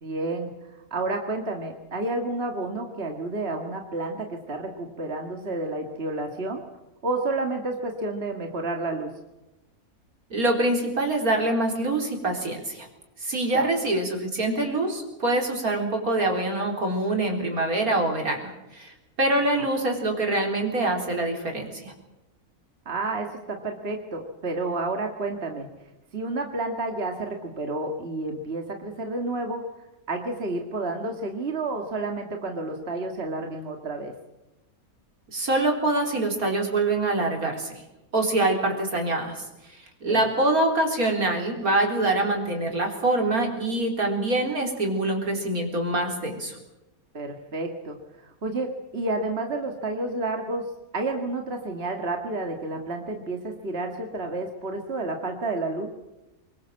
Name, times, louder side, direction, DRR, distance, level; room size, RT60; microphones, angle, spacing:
voice 1, 0.0-0.5 0.9-6.6 7.0-9.1 13.5-13.7 19.6-19.7 22.9-25.7 26.1-29.6 30.1-34.1 40.1-40.2 47.1-50.7 50.9-55.9, right 2 dB, 45° right, 3 dB, 2.2 m, -30 dB
voice 2, 10.3-12.9 13.2-18.9 19.2-21.9 35.3-37.7 38.1-39.4 40.0-46.6, right 2 dB, 75° right, 2 dB, 4.6 m, -25 dB
25.0 x 21.5 x 7.6 m, 1.0 s
omnidirectional pair, 1.5 m